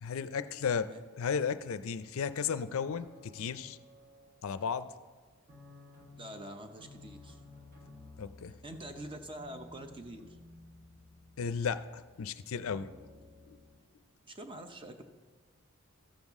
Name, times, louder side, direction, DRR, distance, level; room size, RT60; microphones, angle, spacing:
voice 1, 0.0-0.9 1.2-3.8 4.4-4.9 8.2-8.6 11.4-12.9, left 6 dB, 65° left, 13 dB, 0.4 m, -34 dB
sound 1, 2.9-4.9 5.5-13.8, left 2 dB, 45° right, 1.4 m, -55 dB
voice 2, 6.2-7.4 8.5-10.2 14.2-15.0, right 1 dB, 25° right, 6 dB, 0.7 m, -45 dB
14.0 x 7.3 x 3.6 m, 1.4 s
head